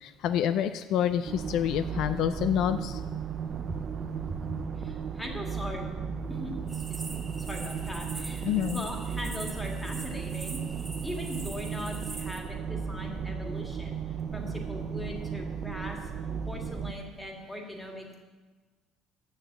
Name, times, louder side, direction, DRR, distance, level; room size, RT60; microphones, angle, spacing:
voice 1, 0.0-3.0 8.4-8.8, left 9 dB, 65° left, 11 dB, 0.3 m, -27 dB
sound 1, 1.2-16.9, right 6 dB, 40° right, 0.5 m, -35 dB
voice 2, 4.2-5.9 6.3-10.6 11.0-16.1 16.5-18.2, left 1 dB, 5° left, 1 dB, 1.7 m, -40 dB
sound 2, 6.7-12.4, right 2 dB, 15° right, 1.6 m, -43 dB
7.0 x 6.8 x 7.6 m, 1.3 s
cardioid pair, 115°, 0 cm